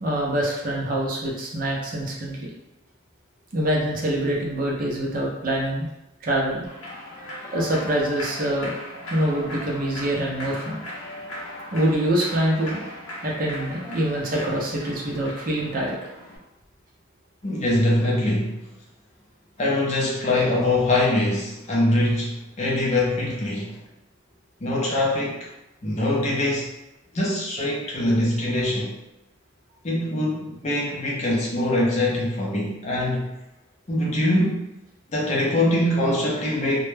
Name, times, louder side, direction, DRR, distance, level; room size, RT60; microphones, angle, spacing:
voice 1, 0.0-2.5 3.5-5.9 6.2-6.7 7.5-8.7 9.1-10.8 11.7-12.8 13.2-16.0, right 1 dB, 40° right, -3 dB, 0.4 m, -25 dB
Human voice / Clapping / Cheering, 6.7-16.4, left 1 dB, 80° left, 0.6 m, -38 dB
voice 2, 17.4-18.6 19.6-23.8 24.6-25.5 25.8-26.7 27.1-28.9 29.8-33.3 33.9-34.6 35.1-36.8, left 1 dB, 30° left, -4 dB, 0.5 m, -23 dB
2.1 x 2.0 x 3.1 m, 0.94 s
head